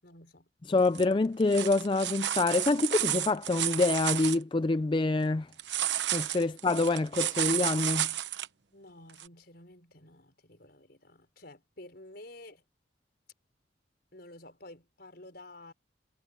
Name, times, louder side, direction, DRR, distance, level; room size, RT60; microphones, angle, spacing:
voice 1, 0.0-0.5 6.4-6.5 8.7-12.6 14.1-15.7, left 1 dB, 55° left, 5.5 m, -51 dB
voice 2, 0.7-5.5 6.1-8.1, left 3 dB, 25° left, 0.4 m, -26 dB
sound 1, 0.9-1.0 1.4-4.4 5.6-8.5 9.2-9.3, right 12 dB, 65° right, 1.0 m, -31 dB
head